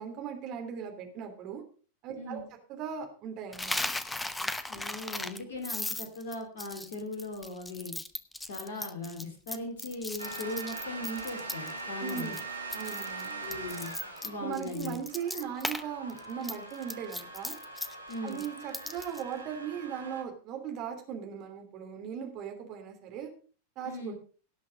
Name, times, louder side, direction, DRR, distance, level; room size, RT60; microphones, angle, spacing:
voice 1, 0.0-1.6 2.0-2.4 2.7-3.8 4.4-4.5 12.0-12.4 12.7-13.4 14.4-17.6 18.2-23.3 23.8-24.2, right 7 dB, 40° right, 4 dB, 3.2 m, -38 dB
voice 2, 2.1-2.4 4.7-7.9 8.5-12.3 13.4-13.9 14.2-15.0 18.1-18.4 23.8-24.1, left 2 dB, 55° left, 5 dB, 2.6 m, -39 dB
Coin (dropping), 3.5-11.8 12.1-12.4 12.7-15.8 16.1-19.2, left 2 dB, 5° left, 0.9 m, -37 dB
sound 1, 10.2-20.2, right 3 dB, 85° right, 2.0 m, -42 dB
17.5 x 6.3 x 5.3 m, 0.39 s
figure-of-eight pair, 90°, 0 cm